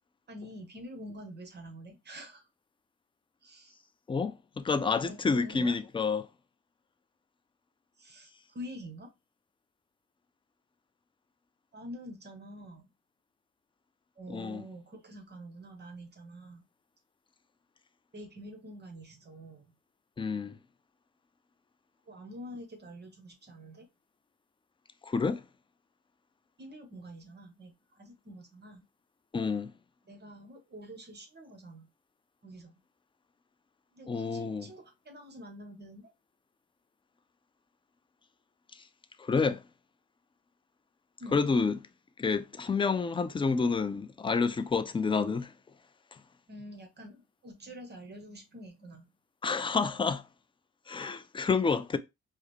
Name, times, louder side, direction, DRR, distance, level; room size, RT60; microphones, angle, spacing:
voice 1, 0.3-2.5 3.4-3.8 4.9-5.8 8.0-9.1 11.7-12.9 14.2-16.6 18.1-19.7 22.1-23.9 26.6-28.8 30.0-31.9 32.4-32.8 33.9-36.1 41.2-41.5 46.5-49.1 50.9-51.1 51.7-51.8, equal, 35° right, 1.0 m, -47 dB
voice 2, 4.1-6.3 14.3-14.6 20.2-20.6 25.0-25.4 29.3-29.7 34.1-34.7 39.2-39.6 41.3-41.8 42.2-45.5 49.4-50.2 50.9-52.0, left 4 dB, 15° left, 0.4 m, -29 dB
4.8 x 2.0 x 3.1 m
cardioid pair, 90°, 30 cm